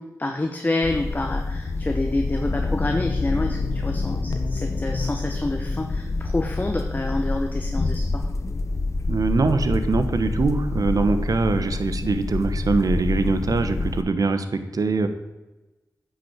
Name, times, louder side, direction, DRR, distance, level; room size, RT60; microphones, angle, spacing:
voice 1, 0.0-8.3, left 2 dB, 25° left, 4 dB, 1.0 m, -28 dB
sound 1, 0.8-14.0, left 3 dB, 50° left, 0.9 m, -27 dB
sound 2, 2.5-6.9 7.2-7.4, left 5 dB, 80° left, 1.0 m, -33 dB
voice 2, 9.1-15.1, right 3 dB, 65° right, 9 dB, 1.1 m, -23 dB
10.0 x 6.2 x 7.4 m, 1.1 s
wide cardioid pair, 75°, 7 cm